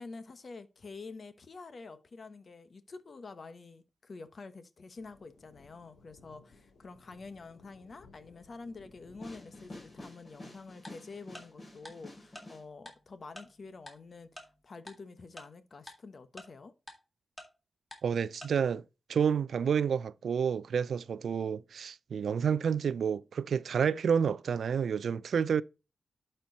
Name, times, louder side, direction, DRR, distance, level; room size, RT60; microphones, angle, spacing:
voice 1, 0.0-16.7, left 4 dB, 45° left, 1.0 m, -48 dB
sound 1, 5.0-10.0, left 3 dB, 60° left, 2.4 m, -59 dB
sound 2, 9.2-12.6, left 1 dB, 30° left, 3.7 m, -49 dB
Tick-tock, 10.8-10.9 11.3-11.4 11.8-11.9 12.3-12.4 12.9-13.0 13.4-13.5 13.9-14.0 14.4-14.5 14.9-15.0 15.4-15.5 15.9-16.0 16.4-16.5 16.9-17.0 17.4-17.5 17.9-18.0 18.4-18.5, left 1 dB, 5° left, 3.0 m, -45 dB
voice 2, 18.0-18.8 19.1-25.6, right 7 dB, 80° right, 0.3 m, -29 dB
11.5 x 4.5 x 4.0 m
wide cardioid pair, 120°, 0 cm